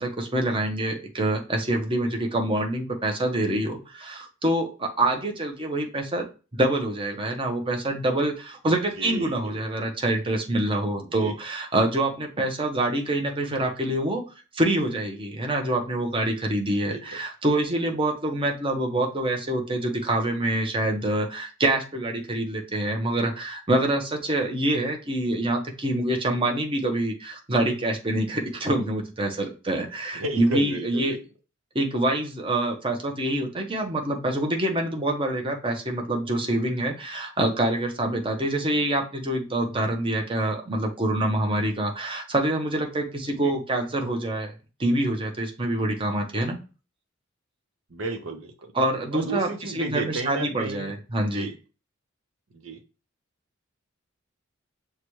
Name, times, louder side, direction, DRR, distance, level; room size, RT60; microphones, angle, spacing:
voice 1, 0.0-6.2 6.5-14.2 14.5-31.1 31.7-44.5 44.8-46.6 48.7-49.5 49.7-51.5, right 1 dB, 25° right, 2 dB, 0.8 m, -26 dB
voice 2, 9.0-9.6 11.1-11.4 16.8-17.0 30.1-31.3 43.3-43.6 47.9-48.7 49.1-51.0 51.2-51.6 52.5-52.8, right 3 dB, 75° right, 5 dB, 0.8 m, -33 dB
6.6 x 2.3 x 3.0 m, 0.33 s
head